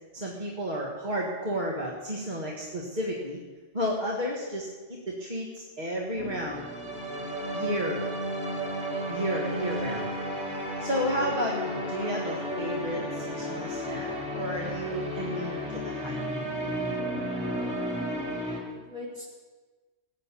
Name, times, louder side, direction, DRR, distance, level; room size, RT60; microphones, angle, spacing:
voice 1, 0.1-3.4 3.7-6.7 7.5-8.0 9.1-10.1 10.8-16.2, equal, 40° right, -3 dB, 2.0 m, -32 dB
sound 1, 6.2-18.6, equal, 5° right, 3.1 m, -33 dB
voice 2, 18.0-19.3, left 2 dB, 60° right, -4 dB, 3.9 m, -43 dB
16.5 x 9.1 x 7.0 m, 1.3 s
omnidirectional pair, 1.2 m